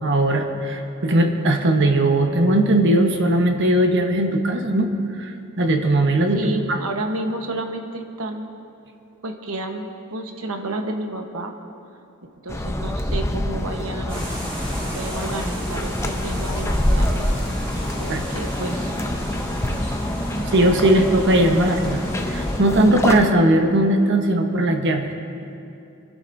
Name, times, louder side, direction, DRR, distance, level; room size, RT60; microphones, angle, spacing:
voice 1, 0.0-4.9 5.2-6.8 18.1-18.2 20.5-22.0 22.3-25.1, right 1 dB, 60° right, 4 dB, 1.1 m, -19 dB
voice 2, 6.3-8.4 9.2-11.5 12.4-14.3 14.9-17.3 18.0-18.9 19.8-20.0, right 2 dB, 80° right, 4 dB, 1.1 m, -31 dB
sound 1, 12.5-23.3, left 1 dB, 15° left, 0.6 m, -26 dB
sound 2, 14.1-22.6, equal, 25° right, 3.9 m, -34 dB
27.0 x 11.0 x 2.7 m, 2.7 s
head